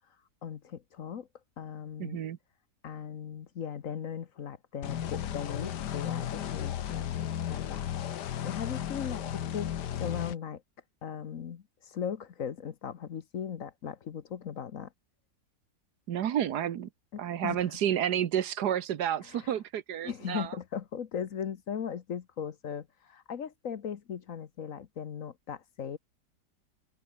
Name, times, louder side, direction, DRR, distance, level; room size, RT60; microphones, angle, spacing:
voice 1, 0.4-1.3 1.6-2.2 2.8-7.1 7.4-9.7 10.0-10.6 11.0-14.9 17.1-17.8 19.2-19.5 20.0-26.0, left 8 dB, 55° left, 1.3 m, -38 dB
voice 2, 2.0-2.4 16.1-16.9 17.2-20.5, right 10 dB, 75° right, 1.5 m, -30 dB
sound 1, 4.8-10.3, left 10 dB, 80° left, 1.7 m, -34 dB
omnidirectional pair, 1.8 m